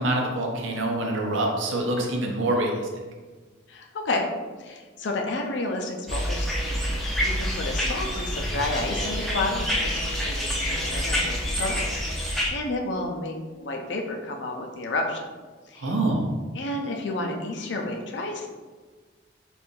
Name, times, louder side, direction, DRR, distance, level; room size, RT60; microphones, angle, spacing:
voice 1, 0.0-2.9 15.8-16.2, right 1 dB, 80° right, 1 dB, 0.6 m, -25 dB
voice 2, 3.7-4.2 4.6-11.8 12.1-15.3 15.7-15.9 16.5-18.5, left 2 dB, 65° left, 2 dB, 0.5 m, -31 dB
sound 1, 6.1-12.5, equal, ahead, 0.4 m, -27 dB
2.7 x 2.4 x 3.7 m, 1.4 s
head